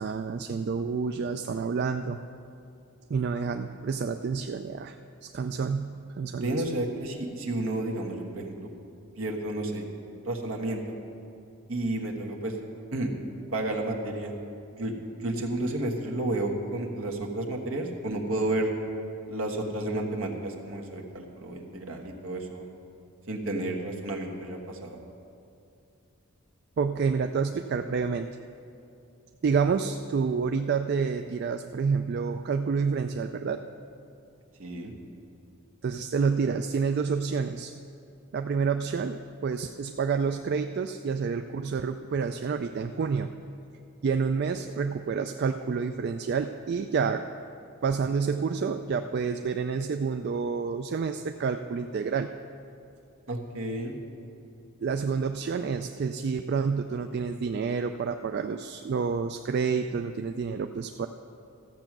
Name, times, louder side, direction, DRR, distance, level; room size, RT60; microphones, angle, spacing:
voice 1, 0.0-2.2 3.1-5.0 5.2-6.6 26.8-28.3 29.4-33.6 35.8-37.7 38.3-43.3 44.0-47.2 47.8-52.3 54.8-61.1, right 5 dB, 50° right, 7 dB, 0.3 m, -28 dB
voice 2, 6.4-8.7 9.2-9.9 10.2-10.8 11.7-12.5 12.9-13.1 13.5-14.3 14.8-14.9 15.2-18.7 19.3-22.7 23.3-25.0 34.6-34.9 53.3-54.0, right 1 dB, 65° right, 1 dB, 1.3 m, -31 dB
14.0 x 7.8 x 6.0 m, 2.6 s
head